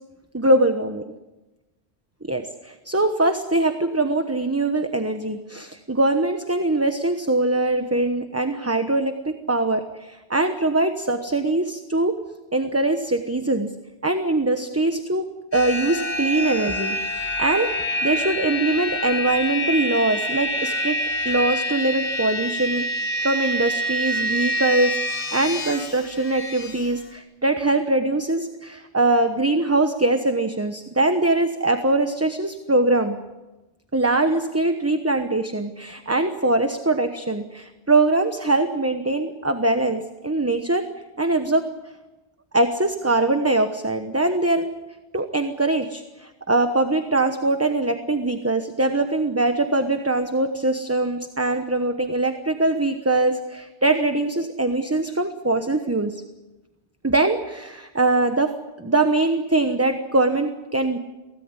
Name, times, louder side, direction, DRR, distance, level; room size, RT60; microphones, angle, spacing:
voice 1, 0.3-1.0 2.3-12.2 12.5-13.7 14.0-15.3 15.5-17.7 18.0-21.0 21.2-22.9 23.2-33.2 33.9-40.9 41.2-41.7 42.5-44.7 45.1-56.2 57.0-61.0, right 2 dB, 15° right, 7 dB, 1.0 m, -22 dB
sound 1, 15.5-26.9, equal, 85° left, 2.0 m, -27 dB
24.0 x 17.5 x 9.7 m, 1.1 s
omnidirectional pair, 1.1 m